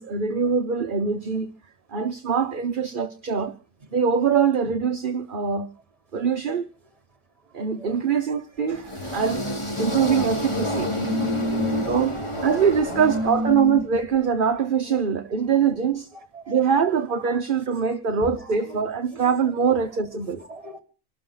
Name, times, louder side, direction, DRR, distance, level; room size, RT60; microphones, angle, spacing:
voice 1, 0.0-1.5 1.9-3.5 3.9-5.7 6.1-6.7 7.5-9.4 9.8-10.9 11.9-16.1 16.5-20.4, right 6 dB, 40° right, 1.1 m, -23 dB
sound 1, 8.7-13.9, left 1 dB, 20° left, 3.1 m, -29 dB
voice 2, 11.0-12.5 12.9-13.8 16.3-16.6 20.5-20.8, left 1 dB, 25° right, 2.2 m, -29 dB
27.0 x 13.0 x 3.9 m
omnidirectional pair, 1.4 m